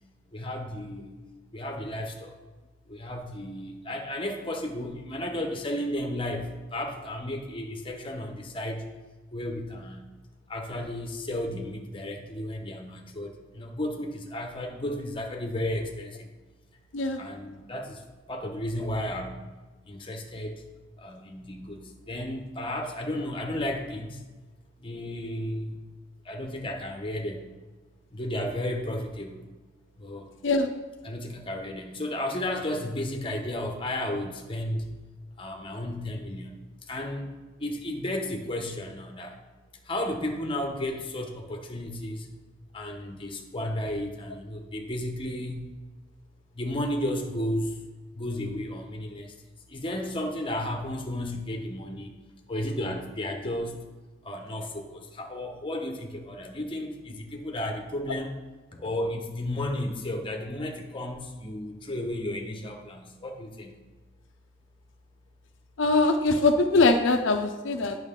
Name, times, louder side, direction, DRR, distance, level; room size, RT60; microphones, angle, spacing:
voice 1, 0.3-1.1 1.5-2.3 2.9-8.8 9.3-10.1 10.5-16.3 17.2-18.0 18.3-19.5 19.9-20.6 21.0-21.8 22.1-24.2 24.8-25.8 26.2-27.5 28.1-29.5 30.0-30.3 31.0-34.9 35.4-36.6 36.9-37.3 37.6-39.4 39.9-42.3 42.7-45.6 46.5-47.8 48.1-49.3 49.7-52.1 52.5-53.8 54.2-58.3 58.7-63.7, left 1 dB, 25° left, 3 dB, 1.0 m, -33 dB
voice 2, 65.8-68.0, left 3 dB, 75° left, 6 dB, 0.5 m, -22 dB
9.0 x 6.1 x 3.7 m, 1.2 s
head